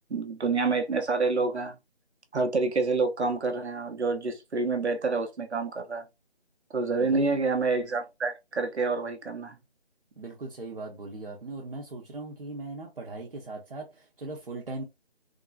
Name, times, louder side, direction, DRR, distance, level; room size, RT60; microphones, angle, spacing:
voice 1, 0.1-1.8 2.3-6.0 6.7-9.6, right 3 dB, 85° right, 0.9 m, -28 dB
voice 2, 7.0-7.4 10.2-14.8, right 2 dB, 55° right, 0.8 m, -39 dB
3.7 x 2.0 x 2.4 m
figure-of-eight pair, 170°, 32 cm